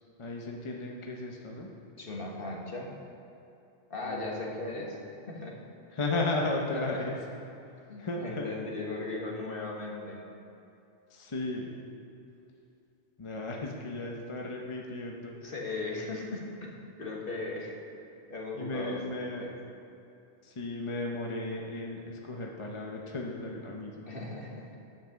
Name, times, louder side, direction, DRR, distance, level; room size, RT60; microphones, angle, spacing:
voice 1, 0.2-1.7 4.0-4.9 5.9-7.2 8.0-8.5 11.1-11.9 13.2-15.4 18.5-19.5 20.4-24.1, left 2 dB, 30° left, 0 dB, 0.8 m, -35 dB
voice 2, 1.9-2.9 3.9-5.0 5.3-5.5 6.7-7.1 7.9-10.2 15.4-17.7 18.3-19.0 19.4-19.5 24.1-24.8, left 2 dB, 55° left, -2 dB, 1.7 m, -37 dB
10.5 x 5.9 x 7.2 m, 2.7 s
omnidirectional pair, 1.2 m